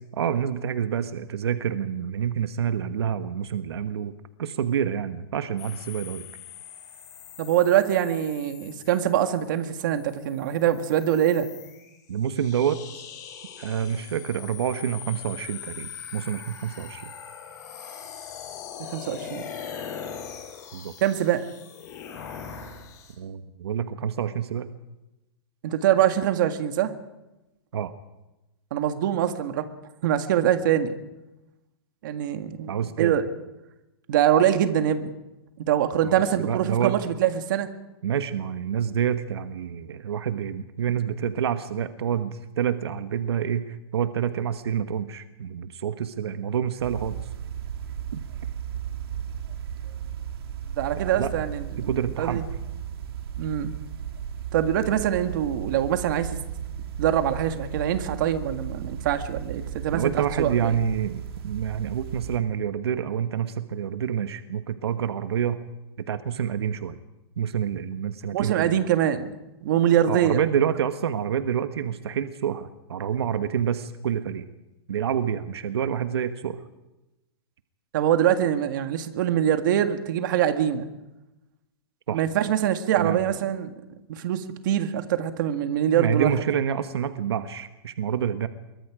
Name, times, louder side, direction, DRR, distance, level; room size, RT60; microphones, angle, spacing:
voice 1, 0.1-4.1 4.4-6.2 12.1-13.0 13.6-17.1 20.7-20.9 23.2-24.7 27.7-27.9 32.7-33.2 36.0-36.9 38.0-47.2 48.1-48.2 51.0-51.3 51.8-52.4 59.9-65.6 66.1-67.0 67.4-68.7 70.1-74.4 74.9-76.6 82.1-82.2 83.0-83.2 85.9-88.5, right 8 dB, 85° right, 9 dB, 1.3 m, -28 dB
sound 1, 5.6-23.1, left 8 dB, 45° left, 6.6 m, -41 dB
voice 2, 7.4-11.5 18.8-19.4 21.0-21.4 25.6-26.9 28.7-29.7 30.0-31.0 32.0-33.3 34.1-35.1 35.6-37.7 50.8-51.9 52.2-52.4 53.4-53.7 54.5-56.4 57.0-60.7 68.3-70.4 77.9-80.9 82.1-83.7 84.1-86.3, right 10 dB, 50° right, 7 dB, 1.9 m, -24 dB
sound 2, 46.8-62.4, right 9 dB, 70° right, 2.6 m, -35 dB
25.5 x 23.0 x 5.0 m, 0.98 s
hypercardioid pair, 160°, 13 cm